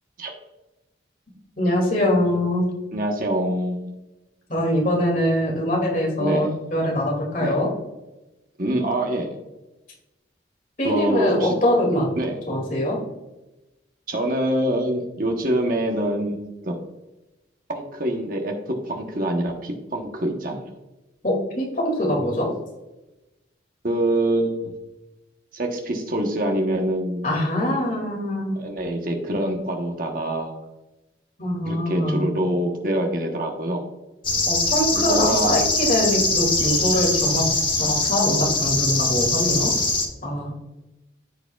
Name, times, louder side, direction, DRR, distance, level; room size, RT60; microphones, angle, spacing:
voice 1, 1.6-2.7 4.5-7.7 10.8-12.1 12.5-13.0 21.2-22.5 27.2-28.6 31.4-32.3 34.5-39.7 40.2-40.5, left 1 dB, 45° left, -1 dB, 2.2 m, -23 dB
voice 2, 2.9-3.9 6.2-6.6 7.4-7.6 8.6-9.4 10.8-11.5 12.2-12.4 14.1-16.7 17.7-20.6 23.8-24.7 25.5-27.4 28.5-30.5 31.6-33.8 35.0-35.7, right 1 dB, 50° right, 2 dB, 1.0 m, -25 dB
sound 1, 34.2-40.1, left 3 dB, 25° left, 1.0 m, -22 dB
14.5 x 4.8 x 2.3 m, 1.0 s
head